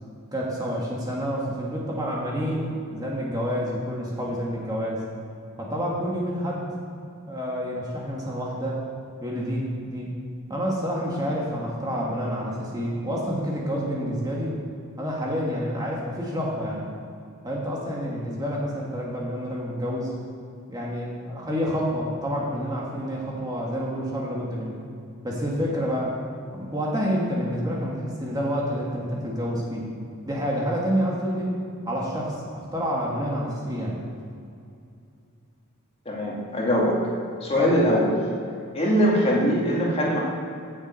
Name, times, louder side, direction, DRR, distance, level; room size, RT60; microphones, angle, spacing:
voice 1, 0.3-5.0 5.6-6.7 7.3-8.8 9.2-10.1 10.5-14.6 15.0-16.9 17.4-20.1 20.7-24.8 25.2-26.1 26.5-29.9 30.2-31.6 31.8-34.0 37.6-37.7, equal, 20° right, -4 dB, 1.7 m, -28 dB
voice 2, 36.1-37.0 37.4-38.1 38.7-40.2, equal, 30° left, -3 dB, 2.1 m, -22 dB
8.3 x 7.3 x 8.5 m, 2.5 s
head